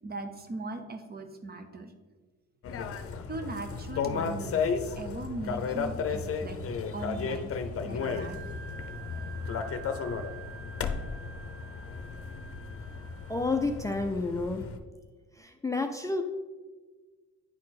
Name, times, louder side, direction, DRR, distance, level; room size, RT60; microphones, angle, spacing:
voice 1, 0.0-1.9 3.3-4.6 5.0-6.6 6.9-7.6 7.8-8.4, right 2 dB, 30° right, 7 dB, 0.9 m, -39 dB
sound 1, 2.6-14.8, left 5 dB, 50° left, 0.7 m, -34 dB
Wind instrument woodwind instrument, 8.0-13.8, right 6 dB, 50° right, 1.1 m, -48 dB
voice 2, 13.3-14.6 15.4-16.2, left 3 dB, 10° left, 5 dB, 0.5 m, -30 dB
9.5 x 4.2 x 4.1 m, 1.3 s
cardioid pair, 90°, 30 cm